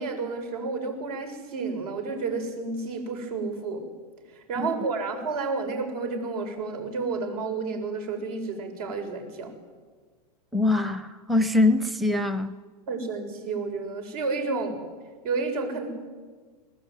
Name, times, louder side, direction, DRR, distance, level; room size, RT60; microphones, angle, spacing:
voice 1, 0.0-3.9 4.3-9.5 12.9-14.8 15.2-15.9, right 4 dB, 70° right, 5 dB, 7.2 m, -31 dB
voice 2, 10.5-12.6, left 2 dB, ahead, 13 dB, 0.7 m, -23 dB
24.5 x 20.0 x 9.4 m, 1.4 s
hypercardioid pair, 135°, 20 cm